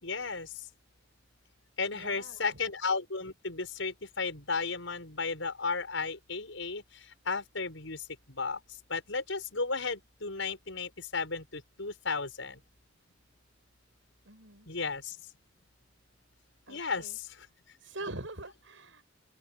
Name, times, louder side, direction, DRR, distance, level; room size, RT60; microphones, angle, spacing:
voice 1, 0.0-0.5 1.8-6.8 7.3-8.6 8.9-12.6 14.7-15.2 16.7-17.5, left 4 dB, 90° left, 6.1 m, -34 dB
voice 2, 1.9-2.4 14.2-14.7 16.7-17.2 17.8-19.0, right 2 dB, 85° right, 7.3 m, -43 dB
open air
head